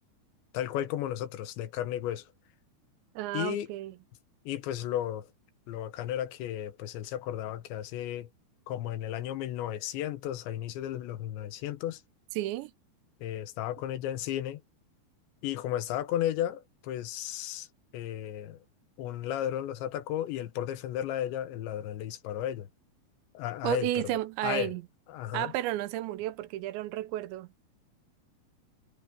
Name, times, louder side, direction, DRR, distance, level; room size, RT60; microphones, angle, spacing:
voice 1, 0.5-2.3 3.3-3.7 4.5-5.3 5.7-8.3 8.7-12.0 13.2-14.6 15.4-17.7 17.9-18.6 19.0-22.7 23.4-23.9 24.4-24.7 25.1-25.5, left 12 dB, 85° left, 3.5 m, -34 dB
voice 2, 3.2-4.0 12.4-12.7 23.6-24.8 25.3-27.5, right 15 dB, 90° right, 3.1 m, -32 dB
omnidirectional pair, 5.2 m